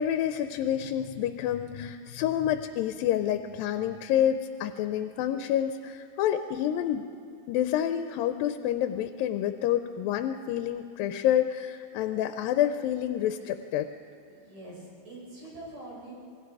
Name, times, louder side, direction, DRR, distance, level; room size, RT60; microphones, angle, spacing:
voice 1, 0.0-7.0 7.5-13.9, left 11 dB, 90° left, 9 dB, 2.4 m, -28 dB
voice 2, 14.3-16.1, right 1 dB, 70° right, -6 dB, 7.8 m, -44 dB
27.0 x 20.0 x 4.8 m, 2.3 s
omnidirectional pair, 4.0 m